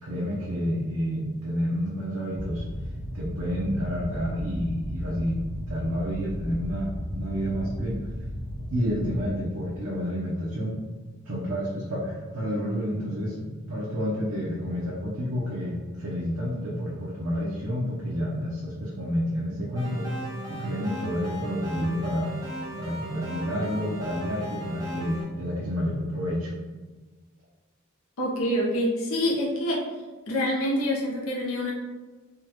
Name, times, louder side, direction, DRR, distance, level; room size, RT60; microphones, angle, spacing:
voice 1, 0.0-2.6 3.1-5.4 5.7-8.0 8.7-10.8 11.3-20.1 20.5-22.3 22.8-26.5, equal, 90° right, -6 dB, 0.7 m, -29 dB
sound 1, 2.3-9.4, equal, 45° right, 0.9 m, -35 dB
sound 2, 19.7-25.2, equal, 15° right, 0.8 m, -37 dB
voice 2, 28.2-29.8 30.3-31.7, equal, 75° left, -3 dB, 0.7 m, -26 dB
3.7 x 2.3 x 2.8 m, 1.3 s
head